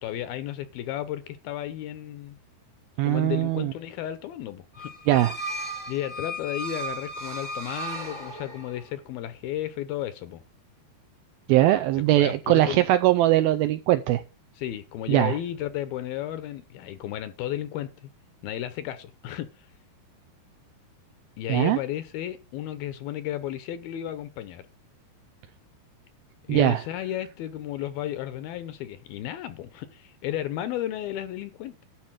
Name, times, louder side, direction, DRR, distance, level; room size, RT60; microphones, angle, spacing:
voice 1, 0.0-2.4 3.0-4.9 5.9-10.4 11.9-12.9 14.6-18.1 18.4-19.7 21.4-24.6 26.5-31.8, left 12 dB, 75° left, 2.4 m, -33 dB
voice 2, 3.0-3.7 5.1-5.3 11.5-14.2 15.1-15.3 21.5-21.8 26.5-26.8, right 15 dB, 80° right, 2.2 m, -21 dB
sound 1, 4.7-8.9, right 1 dB, 35° right, 0.6 m, -35 dB
12.0 x 4.4 x 7.4 m
omnidirectional pair, 4.8 m